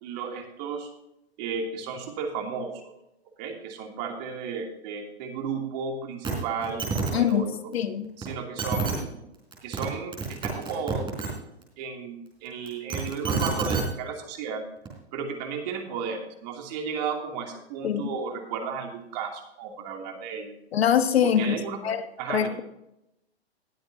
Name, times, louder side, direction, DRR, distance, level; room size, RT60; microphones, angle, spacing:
voice 1, 0.0-0.9 1.4-2.9 3.4-7.7 8.2-9.2 9.6-11.4 11.8-14.6 15.1-20.5 21.2-21.8 22.2-22.6, right 5 dB, 40° right, 2 dB, 2.8 m, -34 dB
sound 1, 6.2-6.3 6.6-7.1 8.2-8.3 8.6-8.9 9.5-9.9 10.1-11.3 12.7-13.8 14.9-15.0, right 4 dB, 15° right, 4.3 m, -28 dB
voice 2, 7.7-8.1 17.8-18.0 20.7-21.5 21.8-22.0 22.3-22.5, left 9 dB, 70° left, 10 dB, 1.3 m, -23 dB
20.0 x 8.0 x 2.8 m, 0.85 s
hypercardioid pair, 130°, 32 cm